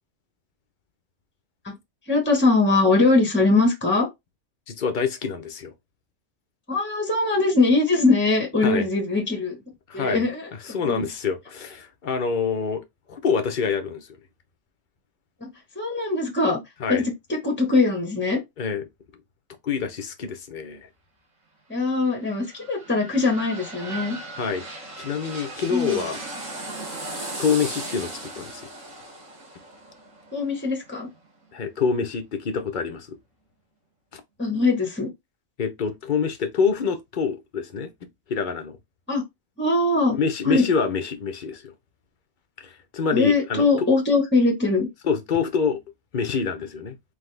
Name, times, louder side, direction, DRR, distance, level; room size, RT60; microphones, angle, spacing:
voice 1, 2.1-4.1 6.7-9.6 9.9-10.5 10.8-11.1 15.4-15.5 15.8-16.6 16.9-17.0 17.3-18.4 21.7-24.2 25.7-26.1 30.3-31.1 34.4-35.1 39.1-39.2 39.6-40.2 40.4-40.7 43.1-44.9, left 3 dB, 10° left, 1.1 m, -21 dB
voice 2, 4.7-5.7 8.6-8.9 9.9-10.3 10.6-14.1 16.8-17.0 18.6-18.8 19.6-20.9 24.3-24.6 25.0-26.2 27.4-28.6 31.5-33.2 34.1-34.2 35.6-37.9 38.3-38.7 40.1-41.7 42.6-43.9 45.0-45.8 46.1-47.0, left 5 dB, 45° left, 0.8 m, -26 dB
sound 1, 22.0-31.7 32.1-32.2, right 2 dB, 70° right, 2.2 m, -37 dB
4.0 x 3.3 x 3.3 m
omnidirectional pair, 1.3 m